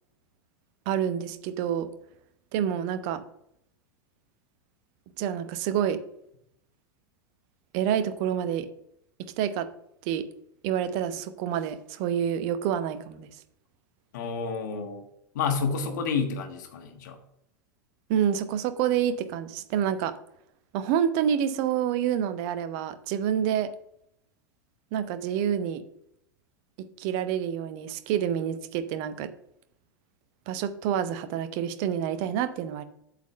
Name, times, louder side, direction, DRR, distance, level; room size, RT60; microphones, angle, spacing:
voice 1, 0.9-1.9 2.5-3.2 5.2-6.0 7.7-8.7 9.4-9.7 10.0-10.2 10.6-13.3 18.1-20.1 20.7-23.7 24.9-25.8 27.0-29.3 30.5-32.8, right 9 dB, 45° right, 12 dB, 0.8 m, -28 dB
voice 2, 14.1-15.0 15.3-17.2, left 5 dB, 60° left, 6 dB, 1.4 m, -29 dB
8.2 x 4.2 x 6.7 m, 0.75 s
figure-of-eight pair, 85°, 11 cm